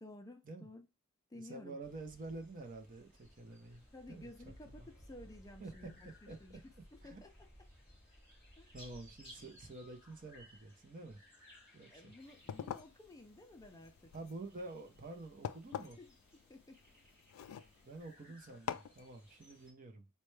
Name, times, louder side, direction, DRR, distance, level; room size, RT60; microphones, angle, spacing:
voice 1, 0.0-0.9 1.3-1.8 3.9-6.6 6.9-7.5 8.6-8.8 11.9-14.1 16.0-16.2 16.5-16.8 17.4-17.7, left 1 dB, 15° left, 0.4 m, -54 dB
voice 2, 1.4-4.5 5.6-5.9 6.3-6.4 7.0-7.2 8.7-11.2 11.7-12.1 14.1-16.0 17.8-20.1, right 2 dB, 40° right, 0.7 m, -49 dB
sound 1, 1.8-19.7, equal, 5° right, 1.9 m, -61 dB
sound 2, 12.2-18.1 18.7-19.0, left 8 dB, 90° left, 0.3 m, -46 dB
4.1 x 2.2 x 3.1 m
head